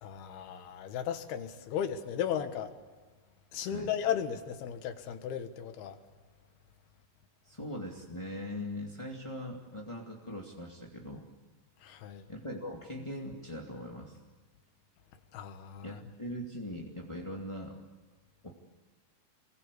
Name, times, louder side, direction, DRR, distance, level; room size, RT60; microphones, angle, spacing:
voice 1, 0.0-2.8 3.5-6.0 11.8-12.3 15.3-16.0, left 9 dB, 90° left, 3.5 m, -35 dB
voice 2, 7.4-11.3 12.3-14.2 15.8-17.8 18.4-18.5, left 1 dB, 10° left, 1.5 m, -41 dB
29.0 x 22.5 x 8.4 m
omnidirectional pair, 4.4 m